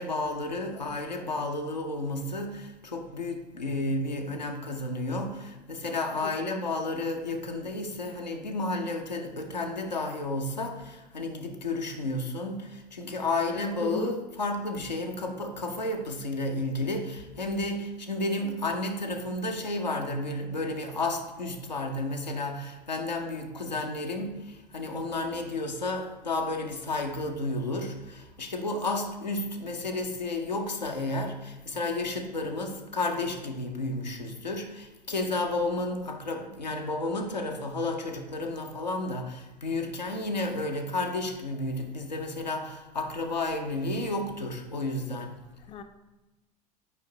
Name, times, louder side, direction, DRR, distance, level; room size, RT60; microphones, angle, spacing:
voice 1, 0.0-45.4, left 2 dB, 90° left, 2 dB, 0.7 m, -32 dB
voice 2, 6.2-6.8 13.8-14.1 45.7-45.8, left 5 dB, 25° left, 8 dB, 0.5 m, -38 dB
8.2 x 5.1 x 2.8 m, 1.0 s
figure-of-eight pair, 75°, 21 cm